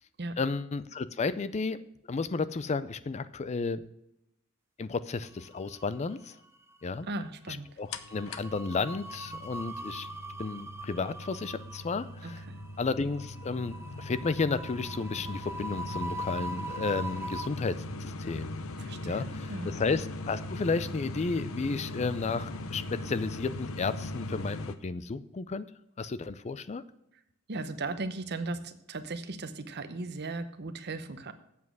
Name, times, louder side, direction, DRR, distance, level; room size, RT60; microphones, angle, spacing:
voice 1, 0.4-1.8 2.1-3.8 4.8-6.4 6.8-7.1 7.5-10.1 10.4-12.4 12.8-18.6 19.0-25.7 26.0-26.8, left 4 dB, 30° left, 15 dB, 0.4 m, -33 dB
sound 1, 5.4-6.2 6.5-6.7 7.9-17.5, right 1 dB, 10° right, 0.8 m, -41 dB
voice 2, 7.0-7.7 12.2-12.6 18.8-19.7 27.5-31.3, right 3 dB, 50° right, 10 dB, 0.9 m, -37 dB
sound 2, 7.9-24.8, left 1 dB, 75° left, 0.8 m, -40 dB
8.4 x 7.2 x 6.1 m, 0.83 s
head